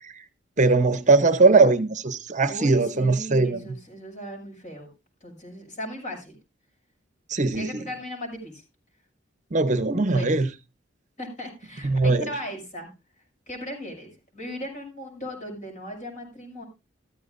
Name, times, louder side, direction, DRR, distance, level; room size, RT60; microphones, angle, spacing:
voice 1, 0.6-3.6 7.3-7.8 9.5-10.5 11.8-12.3, right 3 dB, 40° right, 0.8 m, -20 dB
voice 2, 2.4-4.9 5.2-6.4 7.5-8.6 10.1-10.4 11.2-12.9 13.5-16.7, equal, 40° left, 6.4 m, -37 dB
15.0 x 13.5 x 2.5 m
head